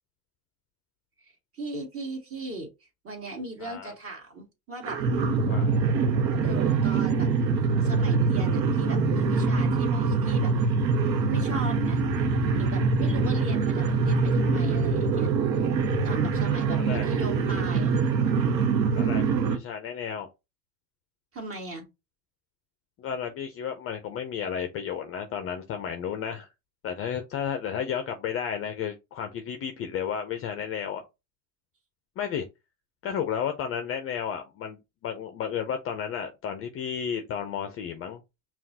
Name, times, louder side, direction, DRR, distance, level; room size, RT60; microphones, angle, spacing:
voice 1, 1.2-2.7 3.0-5.0 6.4-7.3 7.8-10.5 11.3-12.0 12.5-15.3 16.0-17.9 18.2-18.6 21.3-21.8, right 2 dB, 25° right, 1.7 m, -38 dB
voice 2, 3.6-3.9 5.4-5.8 16.7-17.1 18.9-20.3 23.0-26.5 26.8-31.1 32.2-32.5 33.0-38.2, left 8 dB, 30° left, 0.5 m, -33 dB
sound 1, 4.8-19.6, right 4 dB, 85° right, 0.9 m, -24 dB
5.6 x 2.4 x 2.7 m
hypercardioid pair, 105°, 50 cm